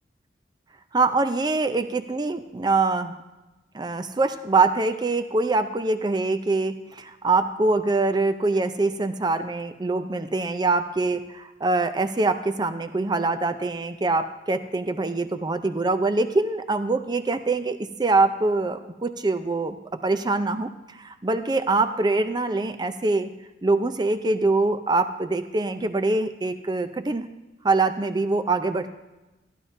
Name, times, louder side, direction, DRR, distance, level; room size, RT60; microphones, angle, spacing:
voice 1, 0.9-3.1 3.7-19.8 20.0-23.3 23.6-27.3 27.6-28.9, right 3 dB, 25° right, 9 dB, 0.5 m, -24 dB
14.0 x 11.0 x 2.7 m, 1.1 s
head